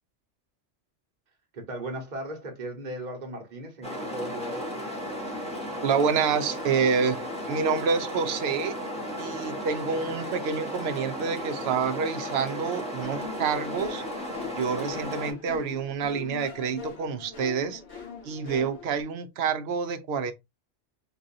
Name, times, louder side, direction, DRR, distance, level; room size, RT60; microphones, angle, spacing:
voice 1, 1.5-4.8, right 1 dB, 40° right, 1.1 m, -37 dB
sound 1, 3.8-15.3, equal, 5° left, 0.9 m, -35 dB
voice 2, 5.8-7.2 7.5-8.8 9.2-14.0 14.6-17.8 18.2-20.3, right 6 dB, 65° right, 0.8 m, -28 dB
sound 2, 13.0-19.0, left 5 dB, 70° left, 1.3 m, -41 dB
4.0 x 2.5 x 2.5 m
omnidirectional pair, 1.2 m